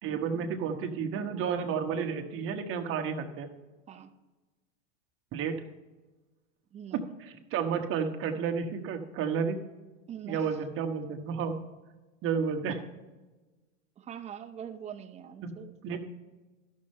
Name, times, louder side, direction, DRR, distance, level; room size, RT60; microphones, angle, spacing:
voice 1, 0.0-3.5 5.3-5.6 6.9-9.6 10.2-11.6 12.2-12.8 15.4-15.5 15.8-16.0, right 6 dB, 35° right, 4 dB, 1.1 m, -31 dB
voice 2, 6.7-7.1 10.1-10.5 14.0-16.0, right 9 dB, 20° right, 7 dB, 0.6 m, -43 dB
12.5 x 6.5 x 4.3 m, 1.2 s
supercardioid pair, 135°, 37 cm